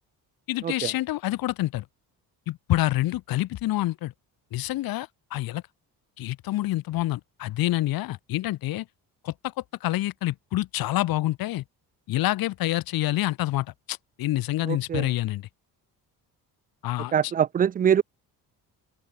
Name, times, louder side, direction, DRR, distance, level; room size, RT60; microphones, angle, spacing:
voice 1, 0.5-1.8 2.5-4.1 4.5-5.6 6.2-8.9 9.2-9.5 9.8-11.6 12.1-15.5 16.8-17.3, left 16 dB, 65° left, 1.7 m, -27 dB
voice 2, 14.7-15.1 17.1-18.0, right 8 dB, 25° right, 0.4 m, -23 dB
open air
cardioid pair, 180°, 38 cm